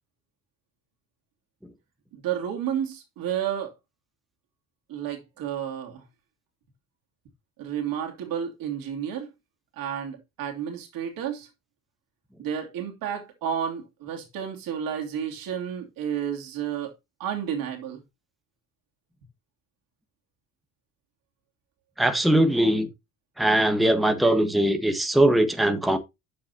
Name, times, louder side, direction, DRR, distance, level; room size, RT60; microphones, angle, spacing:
voice 1, 2.1-3.7 4.9-6.0 7.6-9.3 9.8-11.5 12.4-16.9 17.2-18.0, right 9 dB, 60° right, 3.0 m, -31 dB
voice 2, 22.0-22.9 23.4-26.0, right 1 dB, ahead, 1.4 m, -21 dB
9.4 x 7.6 x 2.8 m
hypercardioid pair, 55°, 39 cm